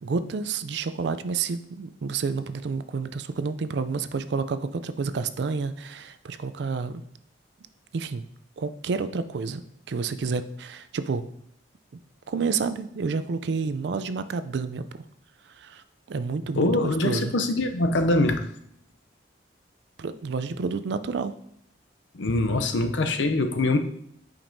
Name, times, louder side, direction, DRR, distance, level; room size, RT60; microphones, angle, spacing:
voice 1, 0.0-7.0 7.9-8.2 8.6-9.6 9.9-11.3 12.3-14.8 15.6-17.3 20.0-21.3, right 4 dB, 65° right, 12 dB, 0.4 m, -29 dB
voice 2, 16.6-18.4 22.1-23.8, left 2 dB, 80° left, 7 dB, 0.6 m, -23 dB
8.8 x 5.2 x 2.7 m, 0.72 s
head